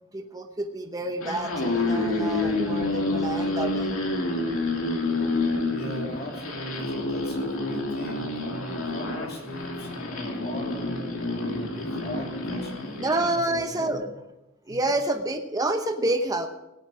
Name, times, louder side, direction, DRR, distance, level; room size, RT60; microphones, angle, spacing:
voice 1, 0.1-4.0 10.3-10.4 13.0-14.1 14.7-16.5, right 2 dB, 20° right, 5 dB, 0.9 m, -28 dB
sound 1, 1.1-13.4, left 2 dB, 85° left, 2.6 m, -28 dB
voice 2, 5.7-13.0 13.3-14.0 14.7-14.9, equal, 50° left, -1 dB, 3.0 m, -38 dB
18.0 x 8.2 x 6.2 m, 0.94 s
head